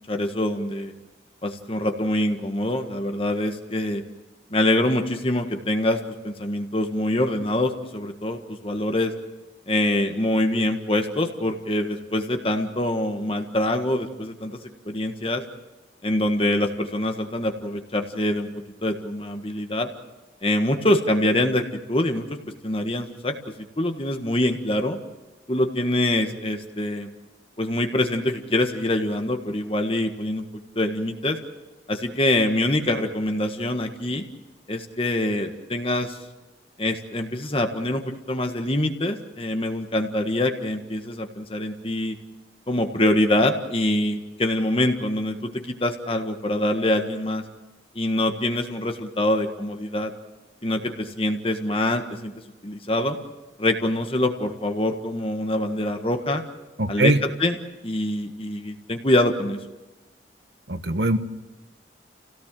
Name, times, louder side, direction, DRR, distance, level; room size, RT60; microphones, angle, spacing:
voice 1, 0.1-0.9 1.4-4.0 4.5-6.0 6.2-9.1 9.7-14.6 14.8-15.4 16.0-18.5 18.8-19.9 20.4-22.4 22.6-23.3 23.8-25.0 25.5-27.1 27.6-30.4 30.7-31.4 31.9-34.2 34.7-36.2 36.8-42.2 42.7-47.4 47.9-50.1 50.6-52.3 52.6-53.2 53.6-56.4 56.9-57.6 57.8-59.6, left 1 dB, 30° left, 5 dB, 1.6 m, -24 dB
voice 2, 56.8-57.2 60.7-61.2, right 2 dB, 75° right, 9 dB, 1.3 m, -21 dB
29.0 x 17.5 x 7.6 m, 1.1 s
head